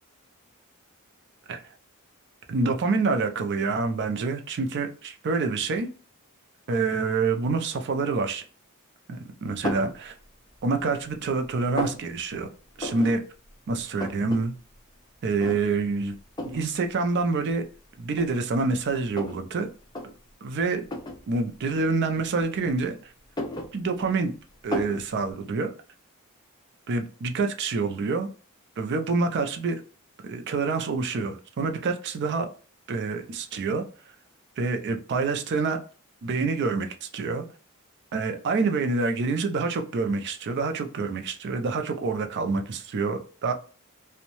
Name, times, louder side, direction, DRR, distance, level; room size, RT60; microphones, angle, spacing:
voice 1, 2.5-5.9 6.7-8.4 9.1-10.2 10.6-12.5 12.8-13.2 13.7-14.5 15.2-16.2 16.4-17.6 18.0-19.7 20.4-20.8 21.3-23.0 23.7-24.3 24.6-25.7 26.9-28.3 28.8-29.8 30.2-32.5 32.9-33.8 34.6-35.8 36.2-37.4 38.1-43.5, right 4 dB, 50° right, 0.4 m, -27 dB
sound 1, 9.6-10.0 10.5-11.1 11.4-12.0 12.8-13.2 13.5-13.6 13.8-14.4 14.7-14.8 15.4-15.9 16.4-16.6 17.5-17.6 18.1-19.4 19.8-20.1 20.8-21.2 22.2-22.8 23.2-24.2 24.7-25.0, left 2 dB, 20° left, 0.5 m, -33 dB
2.6 x 2.1 x 2.9 m
head